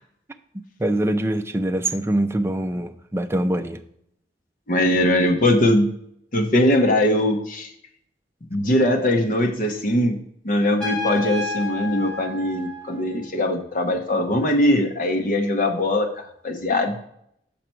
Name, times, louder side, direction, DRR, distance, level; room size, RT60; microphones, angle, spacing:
voice 1, 0.8-3.8, right 1 dB, 15° right, 0.4 m, -23 dB
voice 2, 4.7-5.9 6.3-7.7 8.5-16.1 16.4-17.0, left 1 dB, 50° left, 1.0 m, -21 dB
Trumpet, 10.8-13.4, left 4 dB, 5° left, 1.8 m, -31 dB
6.5 x 5.9 x 4.4 m
head